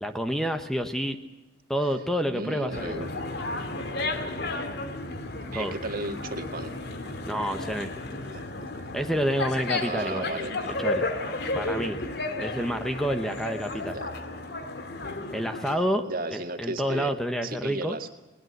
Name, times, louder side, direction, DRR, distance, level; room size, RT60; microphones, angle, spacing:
voice 1, 0.0-1.2 1.7-3.1 5.5-5.8 7.3-7.9 8.9-10.3 10.8-11.0 11.5-12.0 12.4-14.0 15.3-18.0, equal, ahead, 7 dB, 1.1 m, -29 dB
voice 2, 2.3-3.1 5.5-6.7 8.3-8.5 9.8-10.5 12.0-12.1 13.7-14.1 16.1-17.1 17.4-18.1, right 2 dB, 50° right, 6 dB, 2.0 m, -34 dB
sound 1, 2.7-15.8, left 2 dB, 60° left, 2.3 m, -33 dB
21.0 x 20.0 x 8.0 m, 1.1 s
head